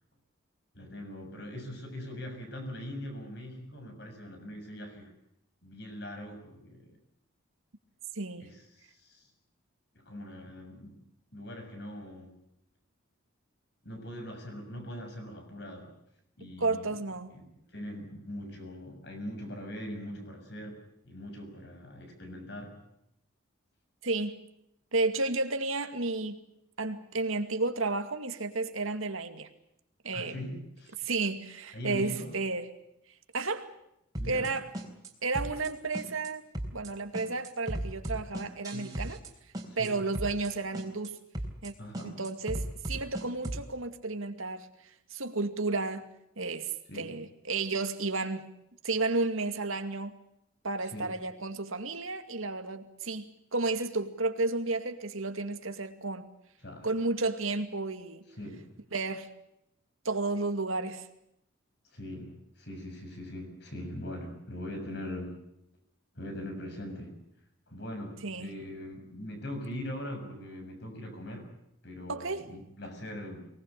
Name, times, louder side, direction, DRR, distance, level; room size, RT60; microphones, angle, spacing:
voice 1, 0.7-5.1 5.6-7.0 8.4-9.3 9.9-11.0 11.3-12.4 13.8-15.9 16.4-16.9 17.3-22.8 30.1-31.1 31.7-32.4 34.2-34.5 38.7-38.9 39.7-40.0 41.8-42.2 46.9-47.1 50.8-51.1 56.6-56.9 58.3-58.7 61.9-65.4 66.1-67.2 67.7-71.5 71.8-73.5, left 1 dB, 55° left, 5 dB, 6.7 m, -41 dB
voice 2, 8.2-8.5 16.6-17.4 24.0-24.4 24.9-26.4 26.8-29.5 30.0-30.4 31.0-32.7 33.3-33.7 34.2-34.7 35.2-36.4 36.7-39.2 39.8-41.2 41.6-41.7 42.0-44.7 45.1-46.1 46.4-48.5 48.8-50.2 50.6-53.2 53.5-56.3 56.8-58.2 58.9-59.3 60.0-61.1 68.2-68.5 72.1-72.4, right 3 dB, 85° right, 7 dB, 2.4 m, -32 dB
sound 1, 34.1-34.5 34.7-35.1 35.3-35.7 35.9-36.3 36.5-36.9 37.1-39.3 39.5-39.9 40.1-40.5 40.7-41.1 41.3-41.7 41.9-43.6, right 1 dB, 20° right, 3.8 m, -36 dB
24.0 x 19.5 x 8.3 m, 0.79 s
head